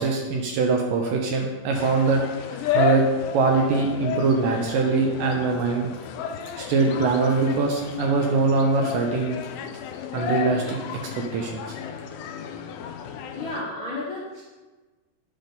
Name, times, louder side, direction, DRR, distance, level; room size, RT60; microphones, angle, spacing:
voice 1, 0.0-2.2 2.5-3.0 3.3-5.9 6.6-9.4 10.1-10.8 11.2-11.8, right 4 dB, 75° right, 2 dB, 2.1 m, -22 dB
sound 1, 1.7-13.6, left 8 dB, 90° left, 1.9 m, -32 dB
voice 2, 13.3-14.4, left 2 dB, 70° left, -6 dB, 1.2 m, -32 dB
9.0 x 3.9 x 5.1 m, 1.2 s
omnidirectional pair, 4.4 m